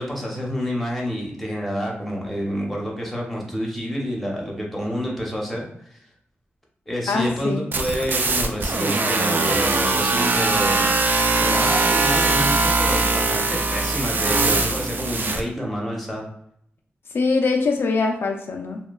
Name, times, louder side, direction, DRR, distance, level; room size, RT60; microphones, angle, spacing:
voice 1, 0.0-6.0 6.9-10.9 11.4-16.3, equal, ahead, -2 dB, 0.8 m, -28 dB
voice 2, 7.1-7.7 17.1-18.8, left 4 dB, 60° left, 3 dB, 0.3 m, -22 dB
sound 1, 7.7-15.4, right 3 dB, 50° right, 0.3 m, -21 dB
2.8 x 2.1 x 2.3 m, 0.70 s
wide cardioid pair, 90°, 4 cm